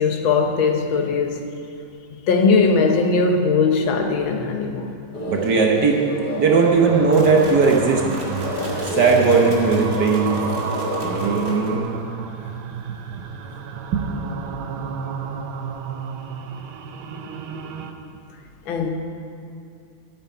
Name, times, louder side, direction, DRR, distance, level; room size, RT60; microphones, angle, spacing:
voice 1, 0.0-1.5 2.1-5.0 18.7-18.9, left 4 dB, 75° left, 4 dB, 1.8 m, -19 dB
sound 1, 5.1-11.8, equal, 25° left, 1.6 m, -28 dB
voice 2, 5.3-6.0 6.4-8.0 9.0-10.4 11.0-11.9 13.9-14.0, right 4 dB, 60° right, 1 dB, 1.5 m, -18 dB
sound 2, 6.5-17.9, right 5 dB, 90° right, 1.6 m, -31 dB
sound 3, 7.1-12.0, right 1 dB, 45° right, 2.2 m, -36 dB
8.9 x 8.8 x 9.2 m, 2.6 s
omnidirectional pair, 2.2 m